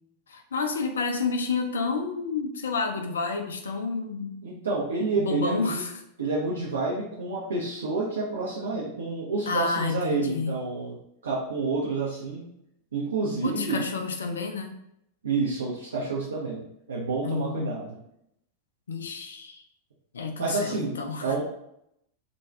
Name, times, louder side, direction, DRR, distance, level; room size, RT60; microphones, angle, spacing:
voice 1, 0.3-4.4 5.2-5.9 9.5-10.6 13.4-14.8 17.2-17.8 18.9-19.6 20.1-21.3, left 4 dB, 70° left, 5 dB, 0.4 m, -30 dB
voice 2, 4.4-5.8 6.2-11.0 11.2-12.4 12.9-13.8 15.2-18.0 20.4-21.4, right 3 dB, 70° right, -5 dB, 0.5 m, -29 dB
2.5 x 2.2 x 3.1 m, 0.77 s
figure-of-eight pair, 90°, 0 cm